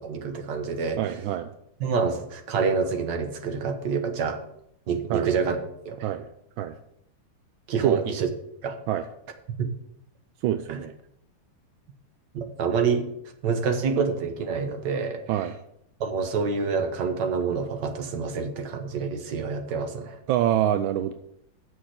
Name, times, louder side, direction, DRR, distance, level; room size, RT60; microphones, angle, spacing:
voice 1, 0.0-1.0 1.8-4.4 4.9-5.6 5.9-6.1 7.7-8.3 8.6-8.8 9.6-9.7 10.7-10.8 12.3-13.1 13.4-15.2 16.0-20.2, right 5 dB, 65° right, 6 dB, 1.7 m, -27 dB
voice 2, 1.0-1.5 5.1-5.3 6.0-6.3 6.6-6.7 7.8-8.0 8.9-9.1 10.4-10.9 15.3-15.5 20.3-21.1, right 11 dB, 85° right, 9 dB, 1.4 m, -25 dB
7.3 x 6.3 x 7.7 m, 0.75 s
omnidirectional pair, 2.2 m